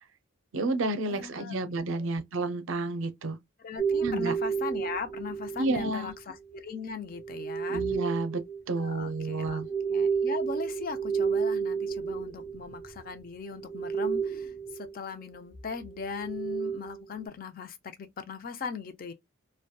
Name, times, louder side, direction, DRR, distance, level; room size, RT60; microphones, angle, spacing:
voice 1, 0.5-3.4 4.0-4.4 5.6-6.1 7.7-9.7, right 2 dB, 65° right, 0.4 m, -30 dB
voice 2, 1.1-1.5 1.9-2.1 3.6-7.8 8.8-9.6 9.9-19.1, left 5 dB, 45° left, 0.4 m, -39 dB
sound 1, 3.8-6.2 7.1-13.2 13.5-14.9 15.8-17.0, right 6 dB, 10° right, 1.0 m, -31 dB
2.7 x 2.1 x 2.2 m
head